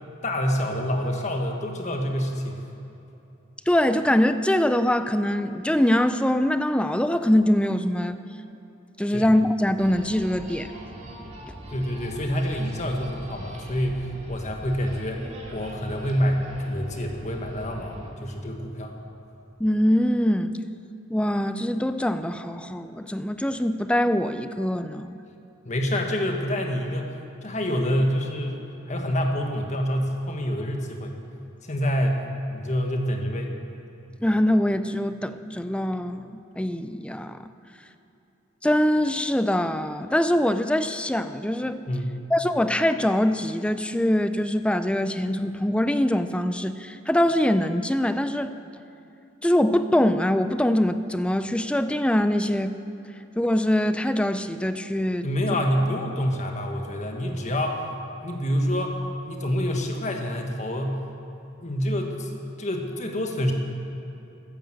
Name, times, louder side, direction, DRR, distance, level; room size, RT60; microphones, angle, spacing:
voice 1, 0.2-2.6 9.1-9.2 11.7-18.9 25.6-27.1 27.4-31.1 31.6-32.2 32.5-33.5 41.9-42.2 55.2-57.8 58.2-61.0 61.6-63.5, equal, 35° left, 2 dB, 1.5 m, -27 dB
voice 2, 3.7-8.2 9.0-10.7 19.6-20.5 21.1-25.2 34.2-37.5 38.6-41.8 42.3-48.6 49.4-52.7 53.4-55.3, left 1 dB, 5° left, 11 dB, 0.4 m, -23 dB
sound 1, 9.8-18.1, right 1 dB, 35° right, 2.4 m, -41 dB
13.5 x 10.5 x 7.8 m, 2.9 s
head